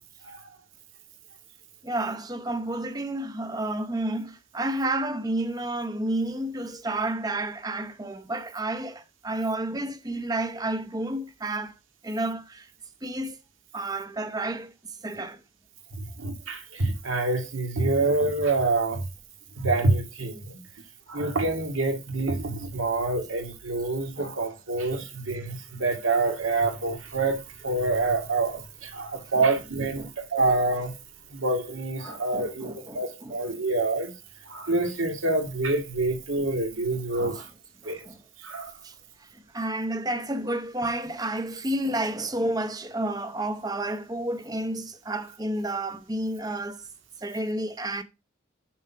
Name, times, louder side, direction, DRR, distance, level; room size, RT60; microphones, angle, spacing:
voice 1, 1.8-11.7 12.0-12.7 13.0-13.4 13.7-14.7 15.0-15.4 24.2-24.3 29.3-29.5 30.0-30.1 32.0-33.6 36.9-37.4 37.8-38.2 38.8-38.9 39.2-46.9 47.2-48.0, right 1 dB, 20° right, 0.8 m, -31 dB
voice 2, 15.9-19.1 19.6-20.6 21.1-30.1 30.3-30.9 31.3-34.1 34.5-37.5 37.8-38.0 38.4-38.7, right 3 dB, 80° right, 2.1 m, -27 dB
7.1 x 6.1 x 5.6 m
head